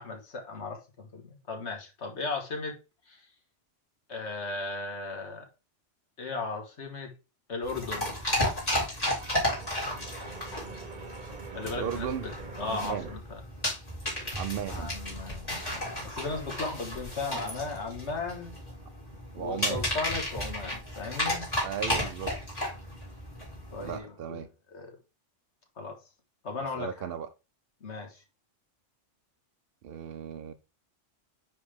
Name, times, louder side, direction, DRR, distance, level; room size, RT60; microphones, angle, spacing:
voice 1, 0.0-2.8 3.1-3.3 4.1-5.5 6.2-7.1 7.5-8.1 11.5-12.3 12.6-13.4 14.7-18.5 19.3-21.5 23.7-24.4 24.7-25.0 25.8-26.0 26.4-27.1 27.8-28.2, left 3 dB, 65° left, 1.8 m, -36 dB
sound 1, 7.6-24.0, left 1 dB, 30° left, 2.5 m, -33 dB
sound 2, 7.7-13.2, right 5 dB, 45° right, 1.0 m, -45 dB
voice 2, 11.6-12.2 12.6-13.1 14.3-15.0 19.3-19.8 21.6-22.3 23.8-24.5 26.7-27.3 29.8-30.5, right 8 dB, 60° right, 0.7 m, -35 dB
9.4 x 3.4 x 3.4 m
omnidirectional pair, 1.3 m